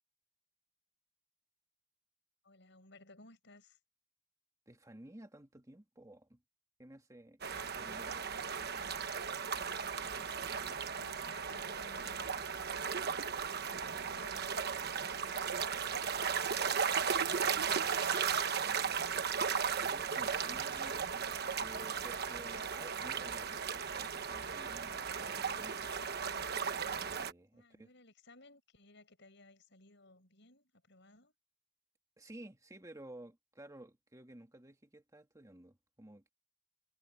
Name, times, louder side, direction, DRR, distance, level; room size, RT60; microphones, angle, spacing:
voice 1, 2.4-3.8 10.1-10.6 10.9-12.3 13.6-19.2 27.5-31.4, left 2 dB, 60° left, 7.6 m, -60 dB
voice 2, 4.7-6.4 6.8-7.4 7.8-8.2 9.0-9.2 19.8-25.9 26.9-27.9 32.2-36.3, right 1 dB, 15° right, 2.0 m, -54 dB
sound 1, 7.4-27.3, right 6 dB, 55° right, 1.3 m, -36 dB
head